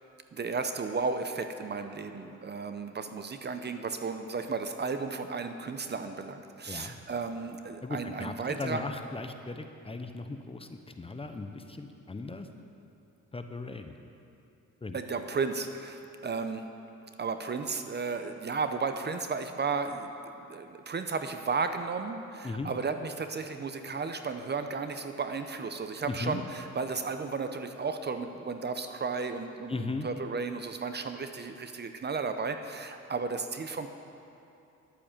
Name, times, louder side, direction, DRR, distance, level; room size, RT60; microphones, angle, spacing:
voice 1, 0.3-8.8 14.9-16.6 17.2-33.9, right 4 dB, 35° right, 8 dB, 0.7 m, -34 dB
voice 2, 7.8-12.5 13.3-13.9 14.8-15.0 22.4-22.7 26.0-26.4 29.7-30.1, left 3 dB, 20° left, 6 dB, 0.8 m, -37 dB
11.5 x 8.4 x 7.3 m, 2.8 s
cardioid pair, 90°, 30 cm